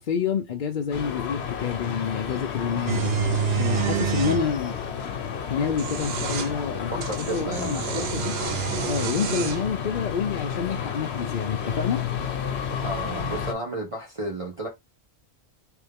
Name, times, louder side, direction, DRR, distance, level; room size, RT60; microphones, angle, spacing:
voice 1, 0.0-3.1 3.6-4.8 5.5-8.4 8.8-12.1, left 6 dB, 55° left, 0.7 m, -28 dB
sound 1, 0.9-13.5, left 7 dB, 80° left, 1.0 m, -31 dB
sound 2, 2.9-4.4 5.6-6.5 7.0-9.7, right 7 dB, 70° right, 0.8 m, -28 dB
voice 2, 6.9-8.3 12.8-14.7, right 2 dB, 30° right, 1.1 m, -33 dB
3.5 x 3.1 x 3.5 m
omnidirectional pair, 1.1 m